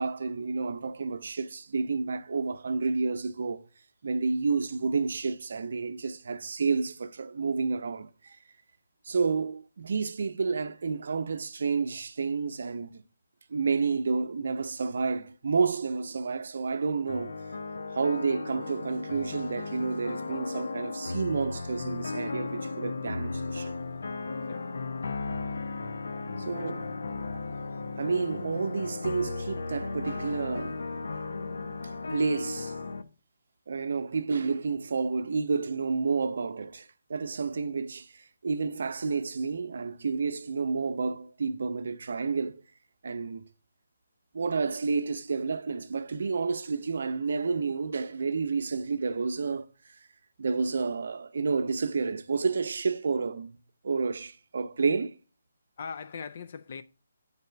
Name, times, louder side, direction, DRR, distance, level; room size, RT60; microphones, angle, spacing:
voice 1, 0.0-3.6 4.0-8.4 9.1-13.0 13.5-17.4 17.9-23.7 26.4-26.9 28.0-31.0 32.1-32.7 33.7-42.6 43.0-43.5 44.3-49.7 50.4-53.6 53.8-55.1, right 4 dB, 65° right, 0.7 m, -30 dB
sound 1, 17.1-33.0, left 3 dB, 75° left, 0.8 m, -35 dB
voice 2, 55.8-56.8, left 6 dB, 50° left, 0.5 m, -40 dB
8.2 x 4.1 x 6.8 m
hypercardioid pair, 155°, 0 cm